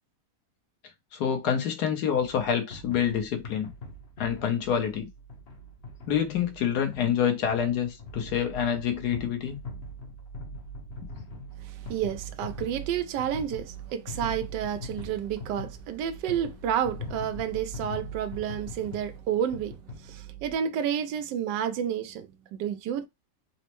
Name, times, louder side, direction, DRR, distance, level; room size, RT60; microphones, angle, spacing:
voice 1, 1.1-3.7 4.2-5.1 6.1-9.6, left 8 dB, 70° left, 1.3 m, -27 dB
sound 1, 2.2-20.5, equal, 45° left, 0.9 m, -41 dB
voice 2, 11.6-23.1, right 9 dB, 85° right, 1.2 m, -30 dB
4.2 x 2.1 x 2.9 m
omnidirectional pair, 1.8 m